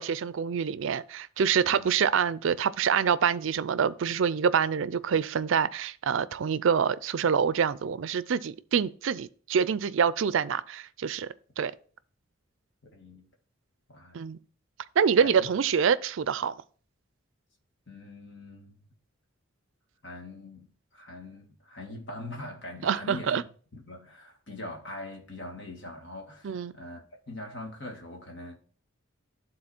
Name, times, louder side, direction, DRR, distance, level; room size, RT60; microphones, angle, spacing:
voice 1, 0.0-11.3 11.6-11.7 14.1-14.4 15.0-16.5 22.8-23.4 26.4-26.7, right 7 dB, 65° right, 0.4 m, -26 dB
voice 2, 1.6-1.9 12.9-13.3 13.9-14.2 15.2-15.5 17.9-18.8 20.0-23.4 23.7-28.6, left 2 dB, 55° left, 1.9 m, -42 dB
11.5 x 3.9 x 4.3 m
head